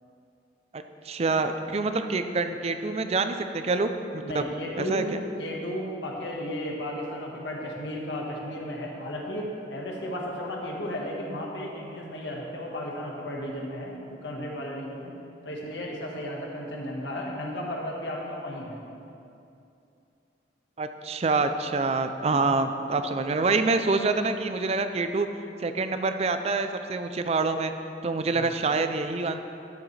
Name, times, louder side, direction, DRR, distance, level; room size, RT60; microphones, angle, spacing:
voice 1, 0.7-4.4 4.8-5.2 20.8-25.3 25.6-27.7 28.0-29.4, right 3 dB, 35° right, 8 dB, 0.4 m, -26 dB
voice 2, 4.2-5.1 5.4-15.1 15.4-18.8 22.3-22.6 28.3-28.5, equal, 85° left, -2 dB, 1.5 m, -34 dB
12.5 x 7.2 x 3.3 m, 2.7 s
head